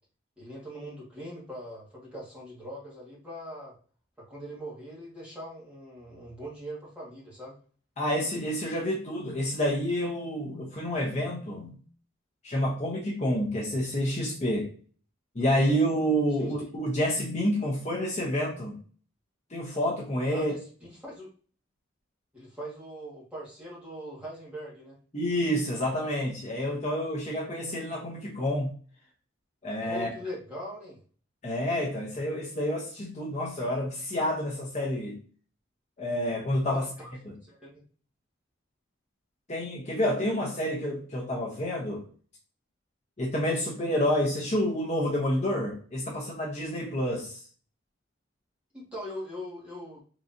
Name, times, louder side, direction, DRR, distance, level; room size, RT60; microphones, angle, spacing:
voice 1, 0.4-3.7 4.3-7.6 16.4-16.6 20.3-20.6 20.9-21.3 22.3-25.0 29.8-31.0 36.7-37.1 37.4-37.8 48.7-50.0, equal, 5° right, -6 dB, 1.5 m, -41 dB
voice 2, 8.0-11.8 12.4-14.7 15.3-18.8 19.5-20.5 25.1-28.7 29.6-30.1 31.4-35.2 36.0-36.9 37.3-37.4 39.5-42.0 43.2-47.4, equal, 35° left, -3 dB, 0.8 m, -29 dB
3.8 x 3.1 x 2.6 m, 0.42 s
head